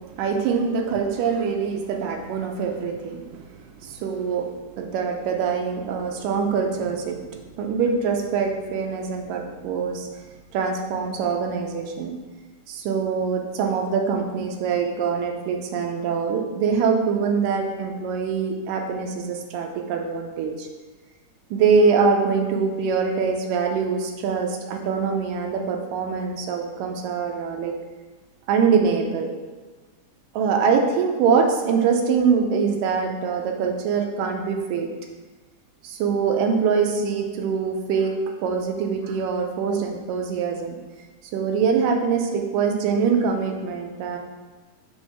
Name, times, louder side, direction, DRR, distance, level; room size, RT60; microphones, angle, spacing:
voice 1, 0.1-3.2 3.8-4.5 4.8-10.1 10.5-12.1 12.7-20.7 21.5-27.7 28.5-29.3 30.4-34.9 35.8-38.2 38.4-40.8 41.3-44.2, right 5 dB, 90° right, 3 dB, 2.3 m, -23 dB
6.2 x 3.5 x 6.0 m, 1.3 s
omnidirectional pair, 3.9 m